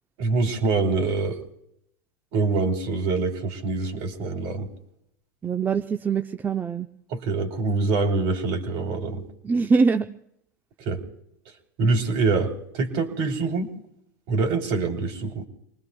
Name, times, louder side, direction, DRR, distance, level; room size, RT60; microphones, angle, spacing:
voice 1, 0.2-1.3 2.3-4.7 7.1-9.2 10.8-11.0 11.8-13.7 14.3-15.5, right 3 dB, 55° right, 4 dB, 3.5 m, -25 dB
voice 2, 5.4-6.9 9.4-10.1, right 5 dB, 20° right, 7 dB, 0.6 m, -23 dB
29.0 x 20.5 x 2.3 m, 0.75 s
hypercardioid pair, 105°, 10 cm